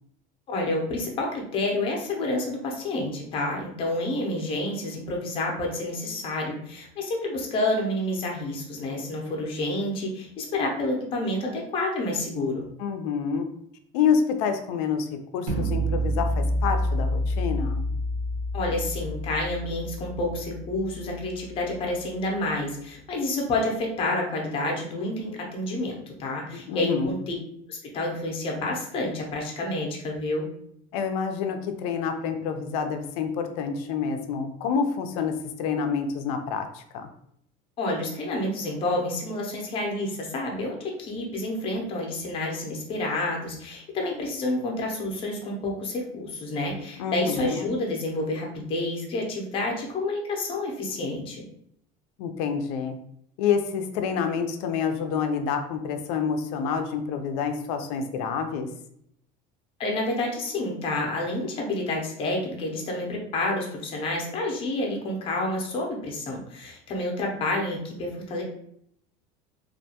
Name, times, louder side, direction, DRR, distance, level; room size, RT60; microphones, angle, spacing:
voice 1, 0.5-12.7 18.5-27.3 27.7-30.4 37.8-51.4 59.8-68.4, left 2 dB, 30° left, 0 dB, 0.6 m, -29 dB
voice 2, 12.8-13.5 13.9-17.8 26.5-27.2 30.9-37.1 47.0-47.7 52.2-53.0 53.4-58.7, left 6 dB, 80° left, 7 dB, 0.4 m, -28 dB
sound 1, 15.5-21.4, equal, 40° right, 0.6 m, -28 dB
2.4 x 2.2 x 2.7 m, 0.70 s
cardioid pair, 165°, 19 cm